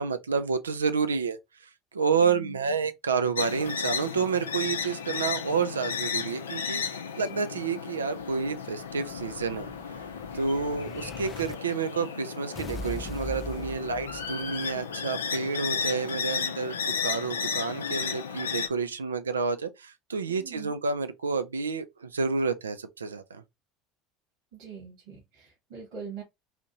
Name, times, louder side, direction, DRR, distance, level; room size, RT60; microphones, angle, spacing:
voice 1, 0.0-1.4 1.9-9.7 10.3-16.7 17.0-23.4, right 5 dB, 85° right, 0.4 m, -29 dB
voice 2, 2.1-2.6 7.3-7.4 20.3-20.8 24.5-26.2, right 7 dB, 70° right, 2.2 m, -43 dB
sound 1, 3.4-18.7, left 6 dB, 85° left, 0.5 m, -34 dB
Explosion, 8.2-11.5 12.5-14.6, left 1 dB, 30° left, 0.4 m, -41 dB
4.2 x 2.6 x 2.8 m
hypercardioid pair, 70°, 0 cm